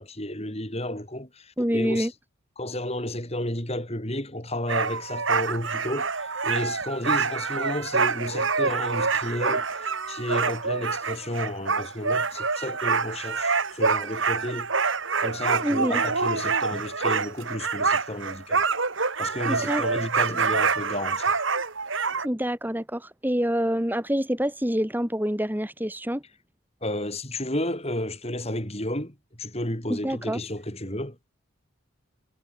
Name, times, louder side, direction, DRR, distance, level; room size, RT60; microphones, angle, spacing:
voice 1, 0.0-2.1 2.6-14.7 15.2-18.7 19.2-21.3 26.8-31.2, left 1 dB, 30° left, 5.8 m, -32 dB
voice 2, 1.6-2.1 15.6-16.0 19.5-19.8 22.2-26.2 29.9-30.4, equal, 10° right, 2.3 m, -26 dB
sound 1, 4.7-22.3, right 4 dB, 65° right, 2.5 m, -26 dB
head